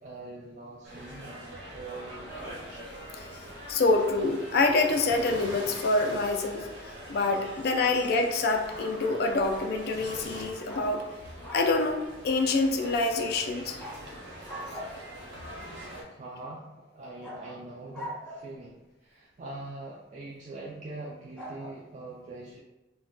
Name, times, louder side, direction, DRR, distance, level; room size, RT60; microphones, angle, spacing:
voice 1, 0.0-2.6 15.6-15.8 16.1-22.6, right 2 dB, 40° right, -5 dB, 0.3 m, -43 dB
sound 1, 0.8-16.0, equal, 60° right, 0.7 m, -44 dB
sound 2, 2.4-10.4, right 1 dB, 90° right, 0.9 m, -47 dB
voice 2, 3.7-6.7 7.1-11.0 11.5-13.8, left 3 dB, 55° left, 4 dB, 0.3 m, -26 dB
sound 3, 10.7-11.8 13.8-14.0 14.5-15.2 17.2-18.6 21.4-21.7, equal, 5° left, 0.6 m, -41 dB
2.2 x 2.2 x 3.7 m, 1.0 s
head